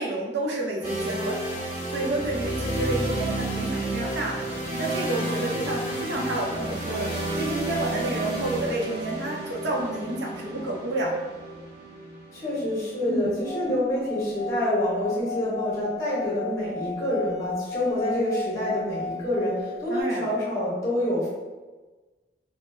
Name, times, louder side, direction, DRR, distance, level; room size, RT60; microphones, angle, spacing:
voice 1, 0.0-1.4 1.9-4.5 4.8-11.1 13.1-13.3 19.9-20.3, right 1 dB, 85° right, -2 dB, 0.6 m, -30 dB
sound 1, 0.8-14.7, right 1 dB, 10° right, 1.4 m, -31 dB
voice 2, 12.3-21.3, left 1 dB, 20° left, -7 dB, 0.7 m, -27 dB
Singing / Glass, 13.4-20.0, left 4 dB, 75° left, 0.4 m, -35 dB
3.5 x 2.0 x 2.6 m, 1.3 s
head